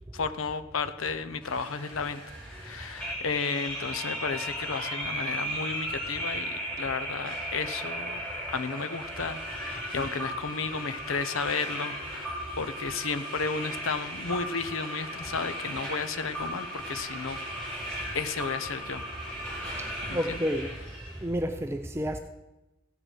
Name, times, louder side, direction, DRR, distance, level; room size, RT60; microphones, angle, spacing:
voice 1, 0.1-8.2 8.5-17.4 17.7-19.0 20.1-20.4, left 5 dB, 75° left, 10 dB, 0.8 m, -33 dB
sound 1, 1.4-21.2, equal, 5° left, 4.4 m, -36 dB
voice 2, 19.6-20.8 21.2-22.2, equal, 10° right, 6 dB, 0.5 m, -31 dB
15.0 x 9.0 x 5.0 m, 0.99 s
head